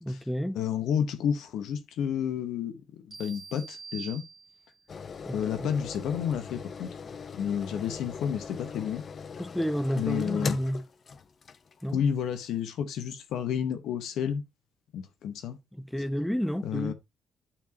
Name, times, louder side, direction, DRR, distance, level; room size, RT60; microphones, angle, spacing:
voice 1, 0.0-0.6 5.3-5.7 9.4-10.8 11.8-12.0 15.7-16.9, equal, 5° left, 0.5 m, -31 dB
voice 2, 0.5-4.2 5.3-6.9 7.4-9.0 10.0-10.6 11.9-14.4 14.9-15.6 16.6-16.9, left 8 dB, 80° left, 1.2 m, -30 dB
sound 1, 3.1-4.9, right 6 dB, 25° right, 2.1 m, -45 dB
sound 2, 4.9-11.9 12.4-12.5, left 5 dB, 45° left, 0.7 m, -39 dB
9.0 x 4.8 x 2.9 m
cardioid pair, 90°, 0 cm